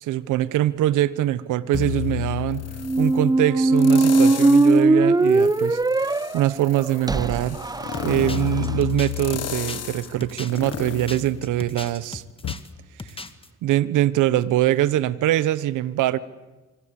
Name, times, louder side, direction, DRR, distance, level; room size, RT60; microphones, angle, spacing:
voice 1, 0.0-2.6 3.0-7.6 8.0-12.2 13.6-16.2, right 13 dB, 85° right, 17 dB, 1.0 m, -23 dB
sound 1, 1.7-3.1 3.8-4.8 5.3-12.0 12.4-12.5, left 11 dB, 55° left, 1.4 m, -31 dB
sound 2, 2.8-8.7, right 2 dB, 15° right, 0.8 m, -19 dB
sound 3, 7.9-12.7 13.0-13.5, left 3 dB, 20° left, 1.7 m, -38 dB
25.5 x 25.5 x 8.5 m, 1.2 s
cardioid pair, 90°, 30 cm